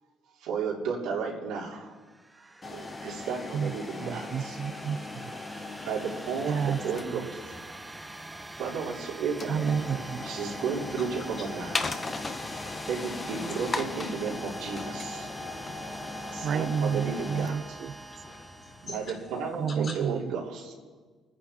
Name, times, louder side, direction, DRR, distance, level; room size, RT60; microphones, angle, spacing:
voice 1, 0.4-1.9 2.7-4.6 5.8-7.5 8.6-9.5 10.2-12.0 12.9-15.3 16.3-17.5 18.8-20.7, right 5 dB, 90° right, -4 dB, 3.2 m, -33 dB
sound 1, 1.9-19.5, right 2 dB, 15° right, 0.8 m, -44 dB
sound 2, 2.6-19.5, left 3 dB, 30° left, 1.2 m, -39 dB
voice 2, 4.0-5.3 6.5-7.3 9.5-10.2 16.4-17.9 19.5-20.3, right 7 dB, 60° right, 15 dB, 0.5 m, -30 dB
voice 3, 15.4-16.0 18.1-19.0 19.7-19.9, left 3 dB, 55° left, -6 dB, 5.1 m, -45 dB
27.0 x 9.8 x 4.3 m, 1.4 s
cardioid pair, 85°, 0 cm